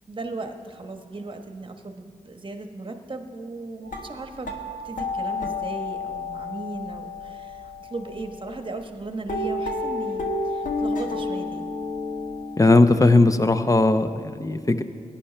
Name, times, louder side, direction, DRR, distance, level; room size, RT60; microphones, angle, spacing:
voice 1, 0.1-4.5 4.8-11.7, right 2 dB, 35° right, 5 dB, 1.1 m, -36 dB
sound 1, 3.8-8.8 9.3-12.7, left 2 dB, 65° left, 1.3 m, -31 dB
voice 2, 12.6-14.8, left 2 dB, 25° left, 9 dB, 0.7 m, -18 dB
17.5 x 10.0 x 3.3 m, 2.1 s
cardioid pair, 60°, 14 cm